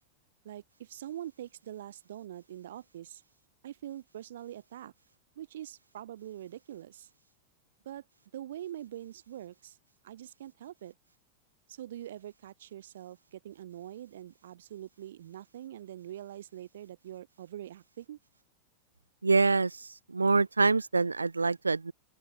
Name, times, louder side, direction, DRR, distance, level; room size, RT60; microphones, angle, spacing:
voice 1, 0.4-3.2 3.6-4.9 5.4-7.1 7.9-8.0 8.3-9.8 10.0-10.9 11.7-18.2, right 12 dB, 60° right, 1.8 m, -44 dB
voice 2, 19.2-19.7 20.1-21.9, right 4 dB, 80° right, 0.4 m, -25 dB
open air
figure-of-eight pair, 90°, 0 cm